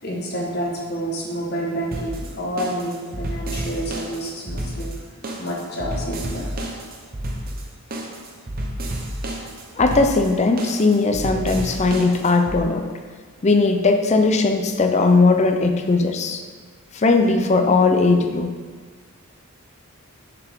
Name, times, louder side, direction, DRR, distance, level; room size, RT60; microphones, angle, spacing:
voice 1, 0.0-4.9 5.4-6.6, right 1 dB, 45° left, -2 dB, 1.3 m, -29 dB
sound 1, 1.9-12.6, right 1 dB, 40° right, 0.8 m, -31 dB
voice 2, 9.8-12.9 13.4-16.4 16.9-18.5, left 3 dB, 30° left, 5 dB, 0.5 m, -18 dB
7.0 x 5.7 x 3.6 m, 1.6 s
head